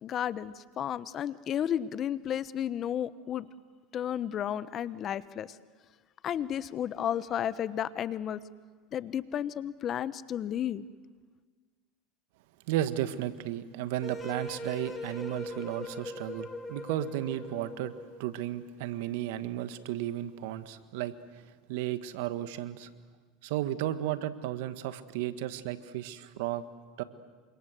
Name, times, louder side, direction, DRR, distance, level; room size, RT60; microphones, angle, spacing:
voice 1, 0.0-3.5 3.9-5.5 6.2-8.4 8.9-10.9, left 10 dB, 40° left, 16 dB, 1.1 m, -32 dB
voice 2, 12.7-17.9 18.2-21.1 21.7-22.9 23.4-26.6 27.0-27.1, right 13 dB, 75° right, 12 dB, 1.6 m, -34 dB
sound 1, 14.0-18.3, left 1 dB, 20° left, 4.7 m, -40 dB
29.0 x 26.0 x 7.8 m, 1.4 s
supercardioid pair, 100°, 0 cm